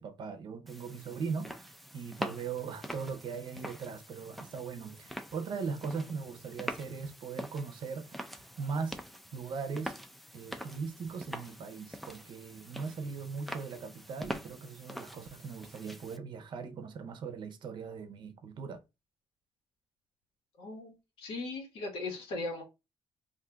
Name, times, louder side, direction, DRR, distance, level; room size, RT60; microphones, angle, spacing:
voice 1, 0.0-8.2 8.6-9.0 9.3-9.9 10.3-18.8, right 5 dB, 60° right, 0.6 m, -39 dB
sound 1, 0.7-16.2, equal, ahead, 0.4 m, -44 dB
voice 2, 20.6-22.6, left 2 dB, 80° left, 1.3 m, -38 dB
2.6 x 2.3 x 3.8 m
cardioid pair, 100°, 9 cm